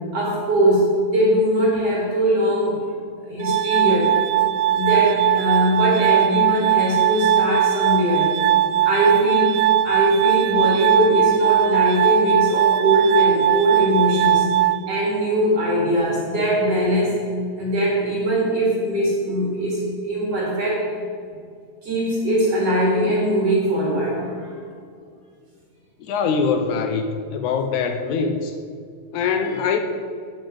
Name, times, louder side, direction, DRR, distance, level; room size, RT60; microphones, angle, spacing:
voice 1, 0.1-2.8 3.3-4.2 4.7-8.3 8.8-9.6 9.8-14.5 14.9-17.2 17.6-20.8 21.8-24.4, equal, 45° right, -4 dB, 2.9 m, -21 dB
Glass, 3.4-15.4, right 11 dB, 85° right, 1.7 m, -19 dB
voice 2, 26.0-28.5 29.1-29.8, left 5 dB, 75° left, 7 dB, 1.9 m, -23 dB
9.0 x 8.0 x 7.5 m, 2.3 s
omnidirectional pair, 4.0 m